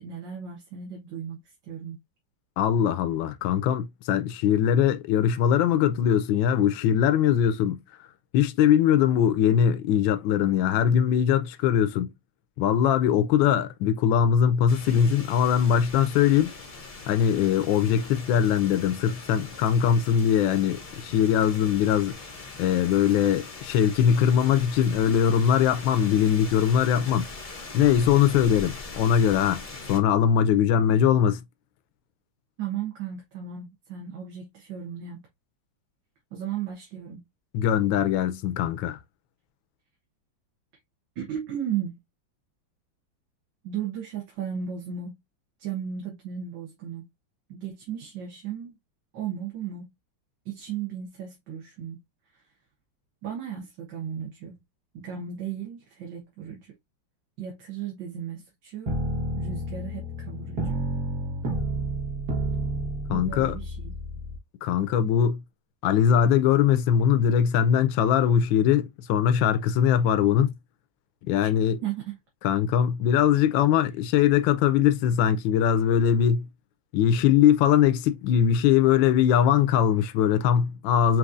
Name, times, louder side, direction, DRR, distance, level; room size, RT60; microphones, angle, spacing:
voice 1, 0.0-2.0 32.6-35.3 36.3-37.3 41.2-42.0 43.6-45.2 45.6-47.0 47.5-48.8 49.1-49.9 50.5-52.0 52.3-52.4 53.2-54.6 54.9-56.8 57.4-59.0 59.4-60.8 63.1-63.9 71.4-71.5 71.8-72.2, right 8 dB, 70° right, 2.0 m, -35 dB
voice 2, 2.6-7.8 8.3-12.1 12.6-16.5 17.1-22.2 22.6-27.3 27.7-31.4 37.5-39.0 63.1-63.6 64.6-65.4 65.8-70.5 71.3-71.8 72.4-76.5 76.9-81.2, left 9 dB, 80° left, 1.3 m, -21 dB
sound 1, 14.7-30.0, left 3 dB, 40° left, 0.5 m, -41 dB
sound 2, 58.9-64.4, right 1 dB, 55° right, 1.8 m, -30 dB
6.0 x 3.0 x 2.6 m
omnidirectional pair, 2.1 m